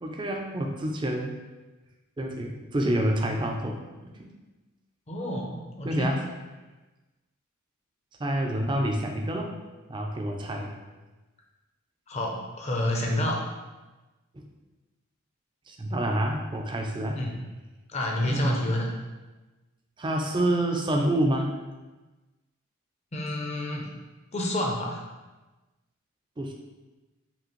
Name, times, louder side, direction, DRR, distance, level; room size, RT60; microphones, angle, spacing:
voice 1, 0.0-1.3 2.2-4.3 5.8-6.2 8.2-9.5 9.9-10.7 14.3-14.5 15.7-17.2 18.3-18.5 20.0-21.5 26.4-26.5, right 1 dB, 20° right, 2 dB, 0.4 m, -28 dB
voice 2, 5.1-6.1 12.1-13.4 17.2-17.4 17.9-18.9 23.1-23.9 24.3-25.0, left 1 dB, 30° left, 0 dB, 0.6 m, -29 dB
5.0 x 2.7 x 3.1 m, 1.2 s
head